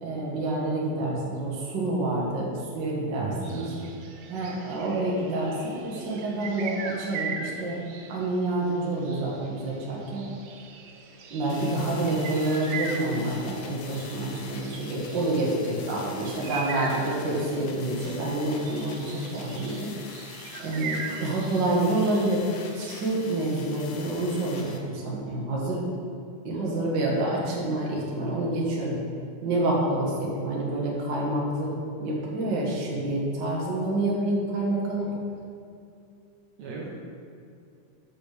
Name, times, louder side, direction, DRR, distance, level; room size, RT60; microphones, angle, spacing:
voice 1, 0.0-3.6 4.3-7.8 8.1-10.3 11.3-19.9 20.6-25.8 26.4-29.0 29.4-31.7 32.0-35.1, right 1 dB, 45° right, -4 dB, 1.8 m, -28 dB
voice 2, 3.2-3.9 35.0-35.2 36.6-36.9, right 4 dB, 65° right, -4 dB, 2.2 m, -37 dB
sound 1, 3.5-22.4, right 5 dB, 90° right, 1.2 m, -40 dB
sound 2, 11.5-24.8, left 5 dB, 70° left, 1.6 m, -45 dB
6.6 x 5.7 x 6.7 m, 2.5 s
omnidirectional pair, 3.5 m